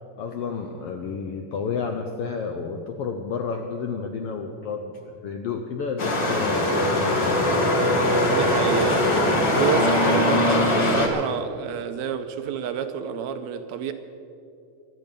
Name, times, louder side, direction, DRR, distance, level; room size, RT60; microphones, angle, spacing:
voice 1, 0.2-7.5, left 5 dB, 75° left, 4 dB, 1.3 m, -31 dB
sound 1, 6.0-11.1, left 1 dB, 40° left, 2.0 m, -21 dB
voice 2, 8.3-13.9, right 8 dB, 80° right, 9 dB, 1.8 m, -29 dB
24.0 x 9.0 x 5.3 m, 2.6 s
omnidirectional pair, 3.5 m